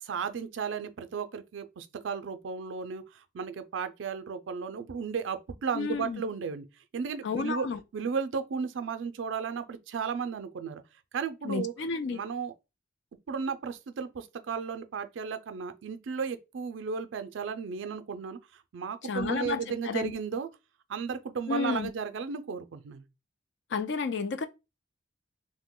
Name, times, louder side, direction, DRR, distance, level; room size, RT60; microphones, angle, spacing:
voice 1, 0.0-6.6 6.9-7.7 7.9-10.8 11.1-11.7 12.1-12.5 13.3-20.5 20.9-23.0, right 6 dB, 75° right, 0.4 m, -34 dB
voice 2, 5.7-6.2 7.2-7.8 11.4-12.2 19.0-20.2 21.5-21.9 23.7-24.5, left 5 dB, 65° left, 0.4 m, -31 dB
2.8 x 2.1 x 3.7 m
head